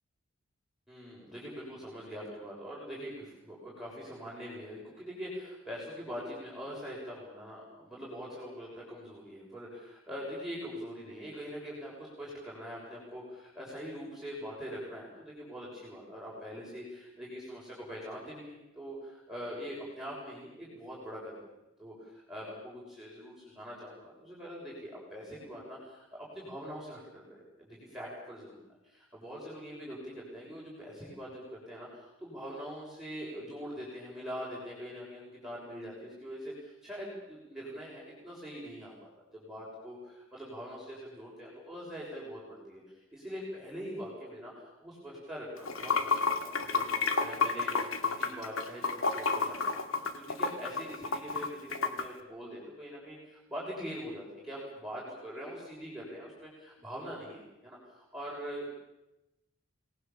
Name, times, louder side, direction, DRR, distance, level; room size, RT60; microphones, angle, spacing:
voice 1, 0.9-21.4 21.8-27.3 27.6-28.6 28.8-46.1 46.4-58.7, equal, ahead, -6 dB, 6.7 m, -43 dB
Water / Sink (filling or washing), 45.6-52.0, left 4 dB, 85° left, 2.2 m, -30 dB
28.0 x 20.0 x 7.2 m, 0.96 s
head